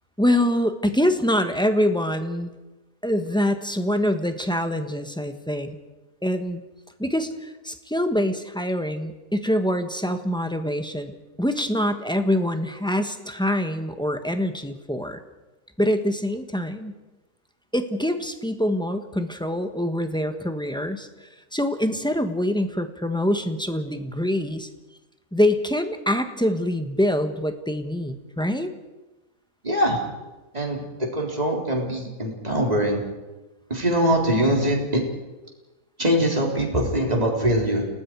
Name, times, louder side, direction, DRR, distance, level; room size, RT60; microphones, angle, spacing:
voice 1, 0.2-2.5 3.0-5.8 6.2-6.6 7.0-15.2 15.8-17.0 17.7-24.7 25.3-28.7, left 1 dB, 5° left, 7 dB, 1.3 m, -25 dB
voice 2, 29.6-30.0 30.5-33.0 33.7-35.0 36.0-37.9, equal, 25° right, 0 dB, 4.0 m, -23 dB
29.5 x 19.0 x 4.8 m, 1.1 s
omnidirectional pair, 1.5 m